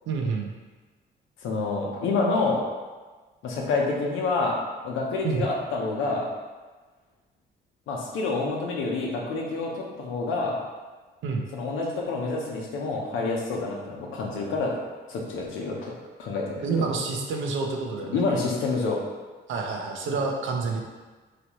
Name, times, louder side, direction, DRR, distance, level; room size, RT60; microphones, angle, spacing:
voice 1, 0.1-0.5 5.2-5.4 11.2-11.5 16.6-18.2 19.5-20.8, right 4 dB, 75° right, 2 dB, 0.6 m, -28 dB
voice 2, 1.4-2.7 3.4-4.6 4.8-6.3 7.9-10.6 11.5-14.8 15.1-15.9 16.2-16.9 18.1-19.0 20.1-20.2, left 3 dB, 85° left, -1 dB, 0.8 m, -28 dB
4.0 x 3.0 x 3.0 m, 1.3 s
cardioid pair, 90°, 20 cm